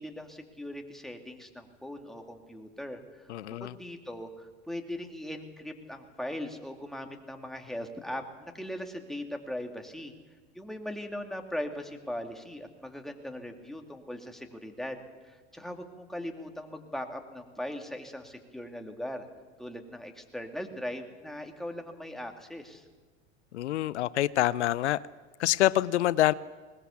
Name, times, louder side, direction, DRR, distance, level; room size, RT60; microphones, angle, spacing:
voice 1, 0.0-10.1 10.5-19.3 19.6-22.8, left 1 dB, ahead, 3 dB, 2.5 m, -39 dB
voice 2, 3.3-3.7 23.5-25.0 25.4-26.3, left 14 dB, 85° left, 19 dB, 0.6 m, -26 dB
21.0 x 19.5 x 7.2 m, 1.4 s
hypercardioid pair, 90°, 33 cm